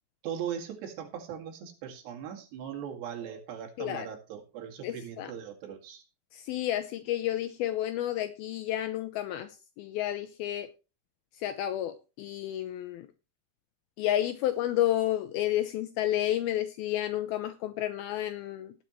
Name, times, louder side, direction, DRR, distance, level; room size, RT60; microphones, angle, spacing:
voice 1, 0.2-6.0, right 8 dB, 75° right, 1 dB, 4.3 m, -39 dB
voice 2, 4.8-5.3 6.3-9.5 9.8-10.7 11.4-13.1 14.0-18.7, left 13 dB, 75° left, 10 dB, 2.3 m, -31 dB
18.5 x 7.2 x 3.0 m, 0.31 s
omnidirectional pair, 4.8 m